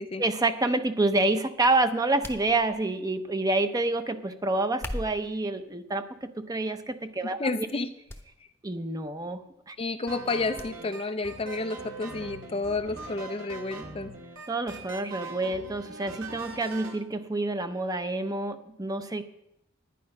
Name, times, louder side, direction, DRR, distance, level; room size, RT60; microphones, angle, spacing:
voice 1, 0.2-7.4 8.6-9.4 9.7-9.8 14.5-19.2, right 2 dB, 20° right, 8 dB, 0.8 m, -28 dB
sound 1, 2.2-3.0 4.6-5.4 6.1-6.5 7.0-7.1 8.1-8.3 8.5-8.6 10.6-10.7 11.1-11.2, left 1 dB, 10° left, 1.0 m, -39 dB
voice 2, 7.4-7.9 9.8-14.1, left 3 dB, 30° left, 9 dB, 0.5 m, -31 dB
sound 2, 10.1-17.0, right 3 dB, 70° right, 2.3 m, -42 dB
11.0 x 10.5 x 5.4 m, 0.80 s
head